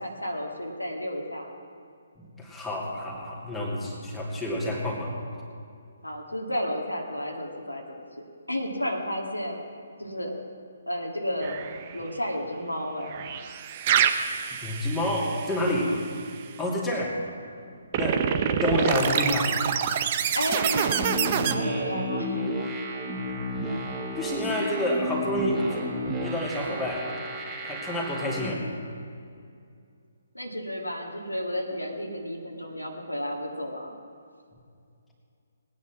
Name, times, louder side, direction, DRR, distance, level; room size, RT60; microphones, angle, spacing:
voice 1, 0.0-1.5 6.0-9.6 10.0-10.4 10.9-13.2 20.3-21.0 21.3-22.6 30.3-33.9, equal, 85° left, 1 dB, 2.1 m, -32 dB
voice 2, 2.2-5.2 14.2-16.0 16.6-17.2 17.9-19.5 23.6-23.7 24.1-25.7 26.2-27.1 27.6-28.6, left 1 dB, 5° left, -5 dB, 2.5 m, -29 dB
sound 1, 11.4-12.0 13.0-16.2 17.9-21.5, right 8 dB, 30° right, 0.8 m, -27 dB
sound 2, 20.5-28.5, equal, 15° right, 2.2 m, -32 dB
19.0 x 9.6 x 6.0 m, 2.4 s
figure-of-eight pair, 135°, 0 cm